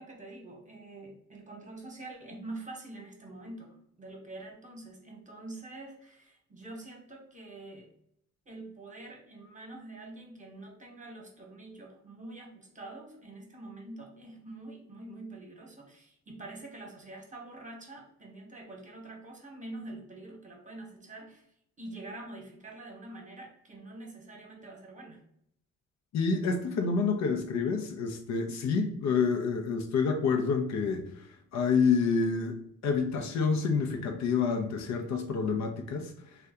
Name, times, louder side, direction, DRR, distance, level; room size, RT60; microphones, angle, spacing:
voice 1, 0.0-7.9 8.5-21.5 21.8-25.2, right 2 dB, 25° right, 0 dB, 1.0 m, -46 dB
voice 2, 26.1-32.6 32.8-36.1, left 5 dB, 65° left, 5 dB, 0.6 m, -28 dB
2.7 x 2.2 x 3.4 m, 0.71 s
cardioid pair, 90°, 30 cm